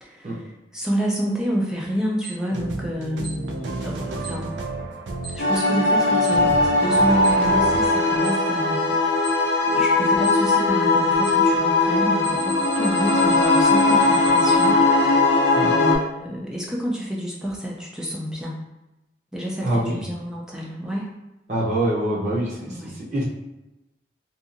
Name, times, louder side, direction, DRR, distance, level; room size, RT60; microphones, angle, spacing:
voice 1, 0.0-4.5 5.3-9.0 9.7-14.8 15.6-18.6 19.3-21.1 22.6-23.0, equal, 5° right, -3 dB, 0.4 m, -28 dB
Alarm, 2.2-2.3 3.2-3.3 4.2-4.3 5.2-5.3 6.2-6.3 7.2-7.3 8.2-8.3 9.2-9.3 10.2-10.3 11.2-11.3 12.2-14.7, right 5 dB, 25° left, 0.7 m, -35 dB
sound 1, 2.4-7.9, right 2 dB, 85° right, 0.4 m, -32 dB
sound 2, 5.4-16.0, left 2 dB, 75° left, 0.5 m, -19 dB
voice 2, 19.6-20.0 21.5-22.5 23.1-23.2, right 1 dB, 40° right, -7 dB, 0.7 m, -23 dB
2.7 x 2.4 x 2.5 m, 0.97 s
head